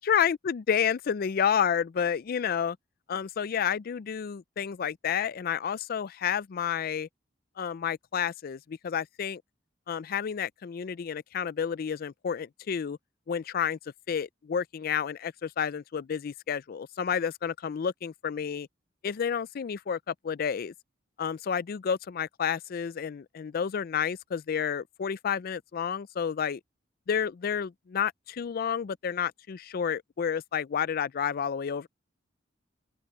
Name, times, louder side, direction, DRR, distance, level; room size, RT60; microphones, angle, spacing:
voice 1, 0.0-2.8 3.1-7.1 7.6-9.4 9.9-13.0 13.3-13.8 14.1-18.7 19.0-20.7 21.2-26.6 27.1-31.9, left 7 dB, 50° left, 0.4 m, -30 dB
open air
head